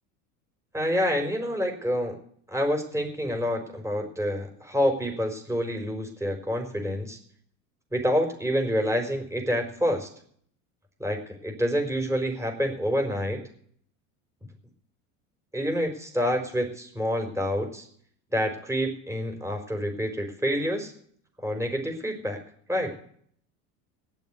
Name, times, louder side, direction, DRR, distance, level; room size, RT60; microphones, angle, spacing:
voice 1, 0.7-2.1 2.5-7.2 7.9-10.1 11.0-13.4 15.5-17.8 18.3-20.9 21.4-22.4 22.7-22.9, equal, 5° right, 3 dB, 4.1 m, -27 dB
19.5 x 7.3 x 9.6 m, 0.64 s
supercardioid pair, 100°, 44 cm